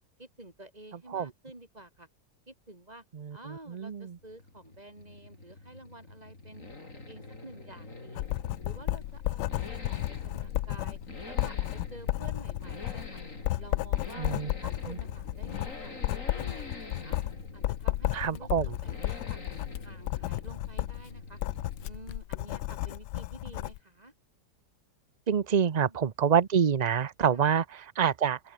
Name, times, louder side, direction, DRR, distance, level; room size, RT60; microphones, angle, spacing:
voice 1, 0.2-2.1 2.5-3.0 3.3-8.2 8.6-11.0 11.2-13.2 13.6-14.3 14.6-17.2 17.5-18.5 18.8-19.4 19.8-21.4 21.8-24.1 25.5-26.0 27.3-27.5, right 1 dB, 20° right, 4.8 m, -50 dB
voice 2, 3.7-4.1 14.2-14.5 14.9-15.0 18.1-18.7 25.3-28.4, right 7 dB, 60° right, 0.4 m, -26 dB
Accelerating revving vroom, 4.0-22.2 22.4-22.5, left 2 dB, 45° left, 5.0 m, -45 dB
Writing, 8.2-23.8, left 16 dB, 80° left, 1.2 m, -33 dB
open air
omnidirectional pair, 1.8 m